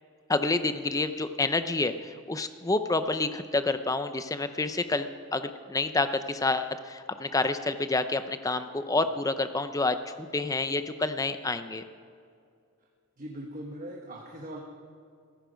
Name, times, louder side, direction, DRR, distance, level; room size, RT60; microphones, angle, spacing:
voice 1, 0.3-11.8, left 3 dB, 15° left, 10 dB, 0.5 m, -28 dB
voice 2, 13.2-14.6, right 1 dB, 35° right, 0 dB, 1.2 m, -40 dB
15.0 x 14.5 x 5.1 m, 2.3 s
head